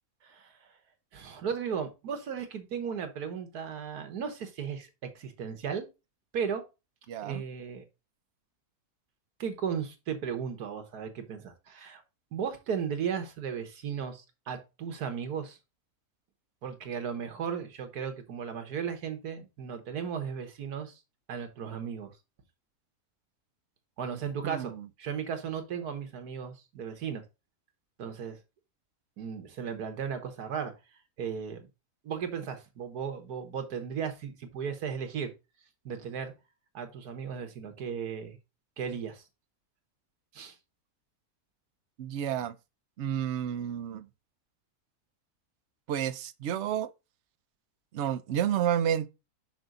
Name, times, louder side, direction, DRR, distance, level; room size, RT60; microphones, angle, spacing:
voice 1, 0.2-0.7 1.1-5.9 6.3-6.6 7.2-7.8 9.4-12.0 12.3-15.6 16.6-21.0 21.3-22.1 24.0-24.7 25.0-27.2 28.0-28.4 29.2-30.7 31.2-31.7 32.0-35.3 35.9-36.3 36.7-38.4 38.8-39.2 40.3-40.6, right 7 dB, 90° right, 1.7 m, -35 dB
voice 2, 7.1-7.4 24.4-24.9 42.0-42.6 43.0-44.1 45.9-46.9 47.9-49.1, right 9 dB, 60° right, 0.8 m, -30 dB
6.1 x 5.6 x 3.9 m
omnidirectional pair, 1.6 m